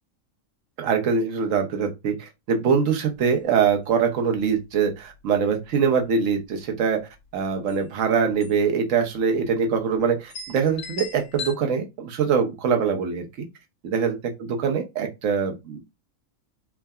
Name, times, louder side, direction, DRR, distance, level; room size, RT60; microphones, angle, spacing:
voice 1, 0.8-13.3 13.8-15.8, right 6 dB, 70° right, 1.0 m, -23 dB
sound 1, 3.2-3.3 3.6-3.7 4.2-4.5 5.1-5.3 5.6-6.3 7.3-7.4 7.7-7.8 8.4-8.7 9.0-9.1 9.8-9.9 10.3-11.6, left 4 dB, 80° left, 1.1 m, -38 dB
3.5 x 2.1 x 2.3 m
omnidirectional pair, 1.5 m